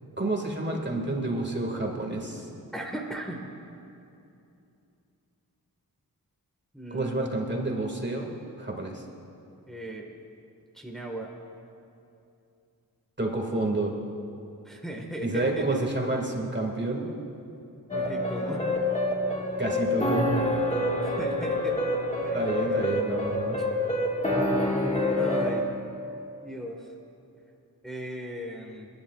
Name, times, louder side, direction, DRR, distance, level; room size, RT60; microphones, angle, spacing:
voice 1, 0.2-2.5 6.9-8.3 8.6-9.0 13.2-14.0 15.2-17.1 19.6-20.3 22.3-23.6, right 2 dB, 30° right, 0 dB, 2.0 m, -29 dB
voice 2, 2.7-3.4 6.7-7.2 9.7-10.1 10.7-11.3 14.6-15.6 17.9-18.7 21.0-21.8 22.2-22.8 25.1-25.7 26.4-26.9 27.8-28.9, right 1 dB, ahead, 0 dB, 1.6 m, -37 dB
sound 1, 17.9-25.6, left 1 dB, 20° left, 1.7 m, -27 dB
29.0 x 10.5 x 2.4 m, 2.7 s
cardioid pair, 55°, 38 cm